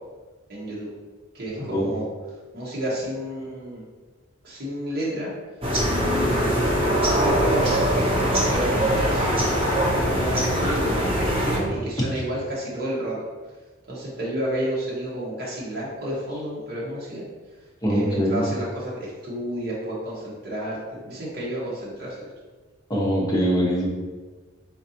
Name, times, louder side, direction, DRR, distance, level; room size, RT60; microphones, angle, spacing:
voice 1, 0.5-0.9 1.3-2.0 2.5-3.8 4.4-5.3 5.8-9.3 9.9-13.2 13.9-17.2 17.9-22.3, right 1 dB, 50° right, -7 dB, 1.2 m, -31 dB
sound 1, 5.6-11.6, equal, 30° right, 0.8 m, -22 dB
voice 2, 17.8-18.4 22.9-23.9, equal, 20° left, -5 dB, 0.9 m, -22 dB
4.2 x 3.9 x 2.8 m, 1.3 s
head